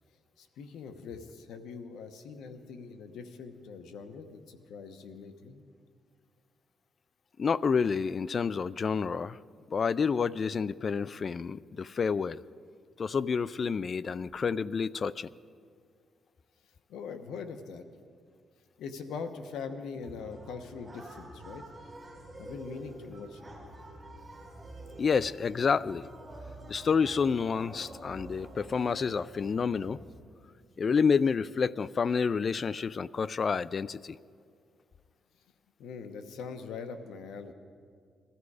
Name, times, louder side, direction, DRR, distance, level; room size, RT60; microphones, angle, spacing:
voice 1, 0.4-5.6 16.9-17.8 18.8-21.6 22.4-23.5 35.8-37.5, left 5 dB, 90° left, 8 dB, 1.0 m, -42 dB
voice 2, 7.4-9.4 9.7-12.4 13.0-15.3 25.0-26.1 26.7-30.0 30.8-34.2, left 5 dB, 40° left, 19 dB, 0.3 m, -29 dB
sound 1, 20.0-30.1, right 1 dB, 15° right, 4.1 m, -48 dB
21.0 x 14.0 x 4.8 m, 2.2 s
cardioid pair, 125°, 0 cm